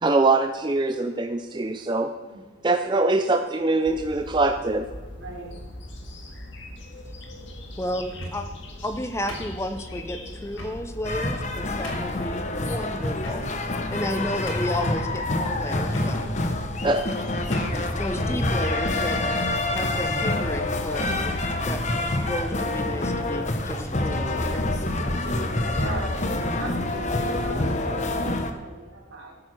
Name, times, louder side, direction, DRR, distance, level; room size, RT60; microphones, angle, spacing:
voice 1, 0.0-2.1 2.6-4.9 16.8-17.1, right 2 dB, 25° right, 7 dB, 0.4 m, -23 dB
sound 1, 3.8-11.8, left 1 dB, 65° left, 2.0 m, -41 dB
voice 2, 5.1-5.5 13.3-13.6 25.6-26.1 26.5-29.4, right 2 dB, 75° right, -1 dB, 3.3 m, -39 dB
voice 3, 7.8-8.5 8.8-13.5 13.9-16.2 18.0-19.4 19.7-21.4 21.7-24.6, left 1 dB, 15° left, 8 dB, 0.7 m, -32 dB
sound 2, 8.0-8.6 9.3-10.0 10.5-10.8 11.4-11.5 11.8-12.2 13.2-13.7 14.1-14.2 14.5-14.9 15.9-16.1 17.0-17.1 17.5-17.8, equal, 85° left, 3.3 m, -38 dB
sound 3, 11.0-28.5, left 2 dB, 35° left, 1.0 m, -26 dB
14.0 x 8.8 x 6.2 m, 1.4 s
head